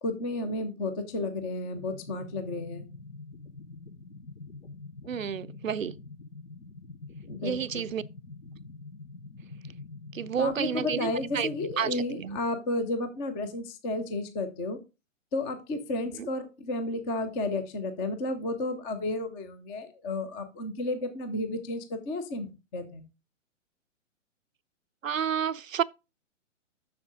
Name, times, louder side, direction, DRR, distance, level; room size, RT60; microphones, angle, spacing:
voice 1, 0.0-2.9 7.3-7.9 10.4-14.8 15.3-23.0, left 2 dB, 10° left, 0.4 m, -32 dB
sound 1, 1.7-11.7, left 3 dB, 85° left, 1.0 m, -45 dB
voice 2, 5.1-6.0 7.4-8.0 10.1-11.5 11.8-12.4 16.2-16.3 25.0-25.8, right 8 dB, 85° right, 0.5 m, -30 dB
7.0 x 6.5 x 3.6 m
figure-of-eight pair, 120°, 38 cm